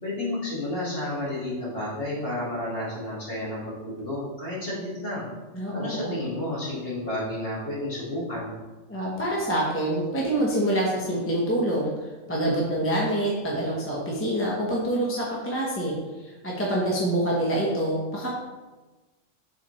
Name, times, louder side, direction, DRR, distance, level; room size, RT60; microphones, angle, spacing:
voice 1, 0.0-5.3 5.7-8.6, left 1 dB, 45° left, -7 dB, 2.2 m, -31 dB
voice 2, 5.5-6.2 8.9-11.9 12.3-18.3, right 1 dB, 10° left, -4 dB, 0.8 m, -26 dB
7.1 x 4.2 x 3.1 m, 1.2 s
omnidirectional pair, 1.4 m